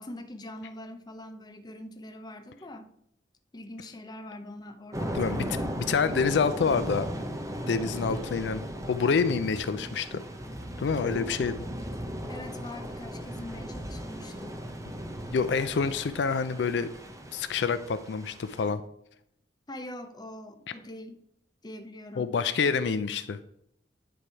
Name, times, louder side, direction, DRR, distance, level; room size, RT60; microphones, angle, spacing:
voice 1, 0.0-2.9 3.5-5.7 12.3-14.5 19.7-21.3 21.6-22.3, left 1 dB, 25° left, 8 dB, 0.6 m, -43 dB
Thunder / Rain, 4.9-18.7, equal, 20° right, 0.8 m, -37 dB
voice 2, 5.1-5.5 5.8-7.1 7.7-10.2 10.8-11.7 15.3-16.9 17.3-18.8 22.2-23.4, left 5 dB, 70° left, 12 dB, 0.4 m, -27 dB
10.0 x 3.4 x 4.6 m, 0.72 s
head